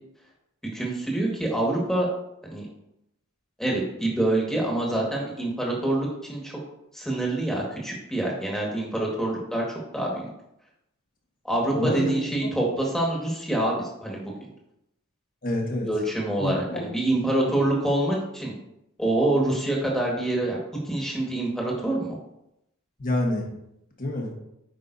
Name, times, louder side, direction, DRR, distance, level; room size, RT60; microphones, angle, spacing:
voice 1, 0.7-2.1 2.4-2.7 3.6-6.5 6.9-9.6 9.9-10.3 11.4-14.3 15.8-18.5 19.0-20.6 20.8-22.1, right 1 dB, ahead, -3 dB, 1.7 m, -26 dB
voice 2, 11.7-12.5 15.4-15.9 16.4-16.9 23.0-23.5 24.0-24.3, left 1 dB, 40° left, 0 dB, 1.4 m, -27 dB
9.0 x 5.4 x 2.7 m, 0.82 s
head